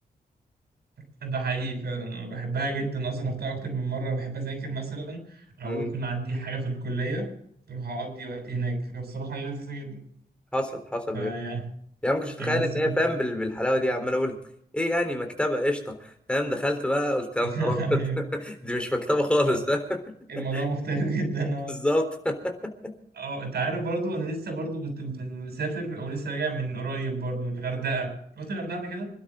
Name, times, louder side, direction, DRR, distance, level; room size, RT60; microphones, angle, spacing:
voice 1, 1.2-7.3 7.7-10.0 11.1-11.6 12.4-13.0 17.4-18.2 19.4-19.5 20.3-21.7 23.1-29.1, right 3 dB, 85° right, 2 dB, 7.7 m, -31 dB
voice 2, 10.5-11.3 12.0-14.3 14.7-20.0 20.4-20.7 21.8-22.9, left 1 dB, 5° left, 4 dB, 3.8 m, -27 dB
26.5 x 12.5 x 3.8 m, 0.66 s
wide cardioid pair, 115°, 16 cm